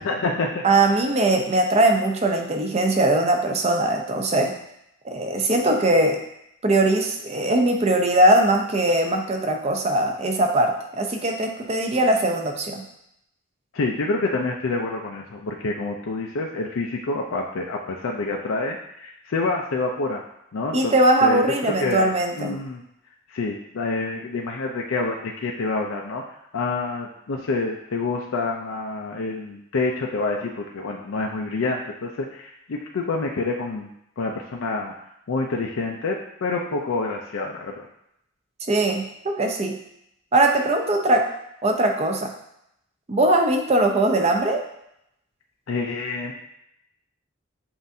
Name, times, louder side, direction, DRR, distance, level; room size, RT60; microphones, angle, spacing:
voice 1, 0.1-0.7 13.7-20.2 20.5-20.9 21.2-21.4 21.8-22.1 22.4-22.8 23.3-26.2 26.5-33.9 34.2-34.9 35.3-37.9 45.7-46.3, left 3 dB, 85° left, 0 dB, 0.5 m, -27 dB
voice 2, 0.6-4.5 5.0-6.2 6.6-12.8 20.7-22.6 38.7-39.8 40.3-41.3 41.6-42.3 43.1-44.6, right 1 dB, 35° right, 3 dB, 0.5 m, -20 dB
7.2 x 2.5 x 2.7 m, 0.78 s
head